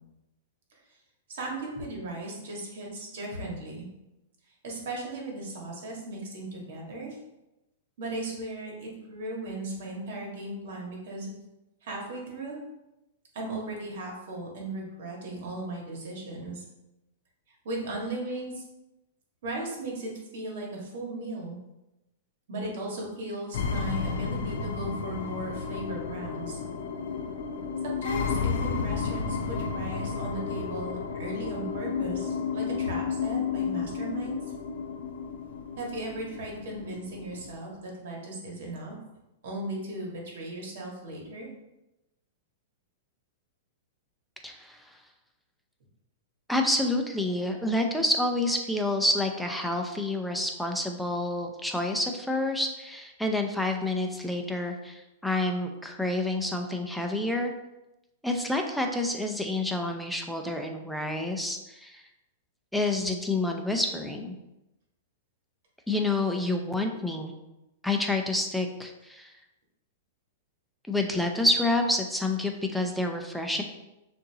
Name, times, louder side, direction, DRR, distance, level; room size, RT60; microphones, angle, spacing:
voice 1, 1.3-3.8 4.6-7.2 8.0-11.3 11.8-12.6 13.3-16.6 17.6-18.6 19.4-21.6 22.5-26.6 27.8-34.4 35.8-38.9 39.4-41.5, right 2 dB, 70° right, -1 dB, 1.6 m, -37 dB
sound 1, 23.5-37.5, left 6 dB, 70° left, 0.5 m, -32 dB
voice 2, 44.4-44.8 46.5-57.5 58.2-62.0 62.7-64.3 65.9-67.3 67.8-69.3 70.9-73.6, left 2 dB, ahead, 3 dB, 0.6 m, -28 dB
6.4 x 2.7 x 2.9 m, 0.95 s
hypercardioid pair, 125°, 0 cm